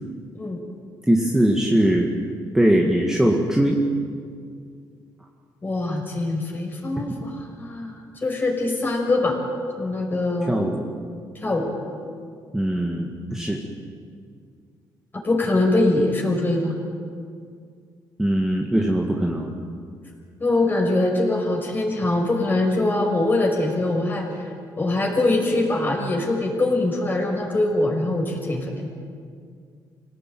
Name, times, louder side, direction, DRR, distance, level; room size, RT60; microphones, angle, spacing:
voice 1, 1.1-2.1 2.5-3.8 10.4-10.8 12.5-13.6 18.2-19.5, right 1 dB, 5° right, 0 dB, 2.0 m, -21 dB
voice 2, 5.6-9.4 9.8-10.6 11.4-11.7 15.2-16.7 20.4-24.3 24.8-28.9, left 2 dB, 25° left, 2 dB, 5.6 m, -23 dB
26.0 x 18.0 x 9.2 m, 2.2 s
cardioid pair, 120°, 8 cm